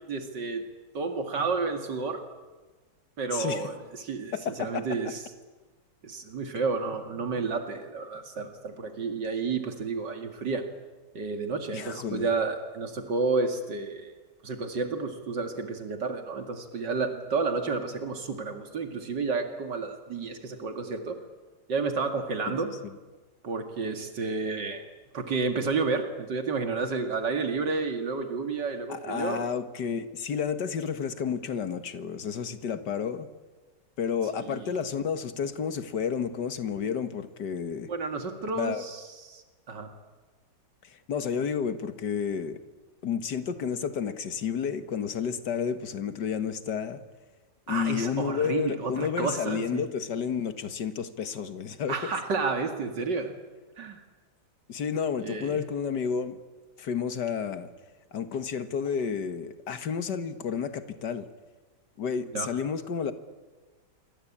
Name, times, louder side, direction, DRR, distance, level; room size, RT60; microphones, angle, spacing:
voice 1, 0.1-0.7 0.9-2.2 3.2-5.2 6.0-10.7 11.1-14.1 14.4-21.2 21.7-22.7 23.4-24.8 25.1-29.5 34.4-34.7 37.9-39.9 47.7-49.9 51.9-53.3 53.8-54.0 55.2-55.6 62.3-62.5, right 4 dB, 80° right, 6 dB, 2.9 m, -31 dB
voice 2, 3.3-3.7 4.3-5.1 11.7-12.3 28.9-33.3 34.0-37.9 38.6-38.8 40.8-42.6 43.0-47.0 47.7-52.1 54.7-56.4 56.8-57.7 58.1-61.3 62.0-63.1, left 7 dB, 75° left, 11 dB, 2.1 m, -31 dB
27.5 x 25.0 x 8.7 m, 1.2 s
omnidirectional pair, 1.9 m